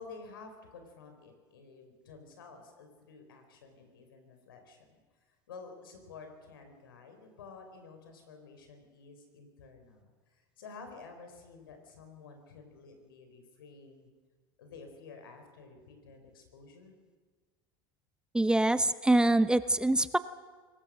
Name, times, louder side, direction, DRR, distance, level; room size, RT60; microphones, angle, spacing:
voice 1, 0.0-4.8 5.5-10.1 10.6-14.1 14.6-16.9, left 4 dB, 85° left, 6 dB, 4.5 m, -51 dB
voice 2, 18.3-20.2, right 1 dB, 5° right, 13 dB, 0.8 m, -25 dB
23.5 x 19.5 x 6.5 m, 1.5 s
hypercardioid pair, 90°, 11 cm